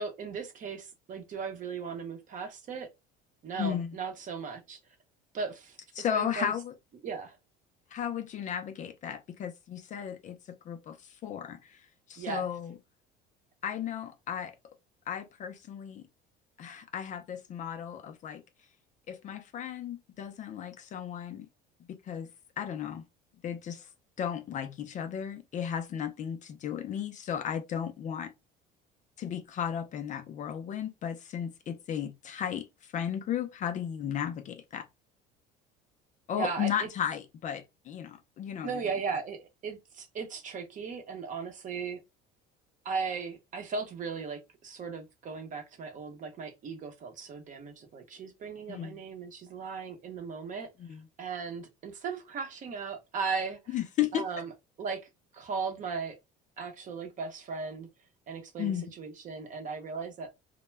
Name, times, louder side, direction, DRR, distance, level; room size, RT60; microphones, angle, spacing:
voice 1, 0.0-2.9 3.4-4.8 5.3-5.8 6.1-6.5 7.0-7.4 12.2-12.5 36.4-36.9 38.6-42.0 42.8-50.7 51.2-53.8 54.1-54.5 54.8-55.0 55.3-56.2 56.6-57.9 58.3-60.4, right 5 dB, 40° right, 0.7 m, -37 dB
voice 2, 3.6-3.9 6.0-6.7 7.9-10.4 10.7-11.0 11.2-11.8 12.1-12.7 13.6-14.5 15.1-16.1 16.6-18.4 19.1-21.5 22.1-22.3 22.6-23.0 23.4-23.9 24.2-28.3 29.2-32.7 32.9-34.9 36.3-38.7 48.7-49.0 50.9-51.0 53.7-54.3 58.6-58.9, left 9 dB, 40° left, 0.4 m, -34 dB
2.2 x 2.1 x 3.1 m
cardioid pair, 110°, 20 cm